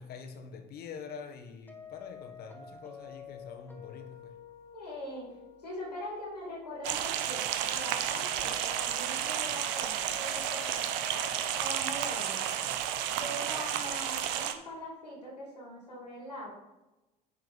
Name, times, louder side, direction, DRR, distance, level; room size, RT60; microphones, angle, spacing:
voice 1, 0.0-4.4, left 6 dB, 50° left, 6 dB, 1.4 m, -45 dB
sound 1, 1.7-14.5, left 7 dB, 10° left, 1.7 m, -50 dB
voice 2, 4.7-5.3 5.6-10.8 11.6-12.4 13.2-16.5, equal, 90° left, -3 dB, 2.7 m, -42 dB
sound 2, 6.8-14.5, right 10 dB, 60° right, 0.8 m, -32 dB
9.5 x 4.6 x 5.1 m, 1.0 s
figure-of-eight pair, 55°, 20 cm